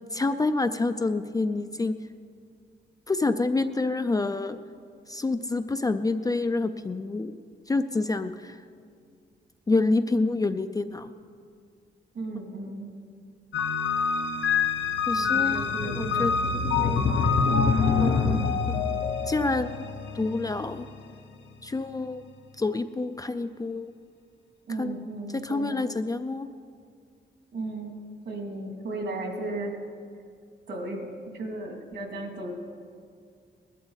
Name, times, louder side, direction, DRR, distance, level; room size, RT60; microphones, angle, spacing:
voice 1, 0.1-1.9 3.1-4.6 5.1-7.4 7.7-8.6 9.7-11.1 15.1-17.1 18.0-18.4 18.7-18.8 19.3-19.8 20.1-20.9 21.6-22.2 22.6-23.9 24.8-24.9 25.4-26.5, left 3 dB, 20° left, 9 dB, 0.4 m, -27 dB
voice 2, 12.1-12.9 15.1-16.4 16.7-17.3 18.3-18.6 24.7-25.8 27.5-28.0 28.2-29.8 30.7-31.1 31.3-32.5, right 2 dB, 70° right, 1 dB, 2.5 m, -35 dB
sound 1, 13.5-20.8, left 5 dB, 90° left, 0.9 m, -25 dB
20.0 x 12.0 x 4.0 m, 2.2 s
wide cardioid pair, 150°, 19 cm